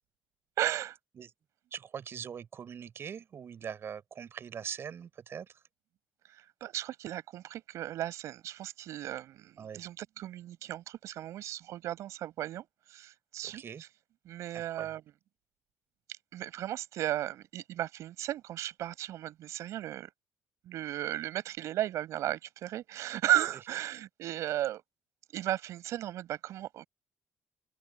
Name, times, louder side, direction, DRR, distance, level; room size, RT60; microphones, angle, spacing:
voice 1, 0.6-1.0 6.2-13.6 14.2-15.0 16.1-20.1 20.6-24.8 25.3-26.8, right 13 dB, 80° right, 5.1 m, -35 dB
voice 2, 1.7-5.6 9.6-9.8 13.4-13.8 14.5-14.9, right 7 dB, 55° right, 6.0 m, -42 dB
open air
cardioid pair, 85°, 5 cm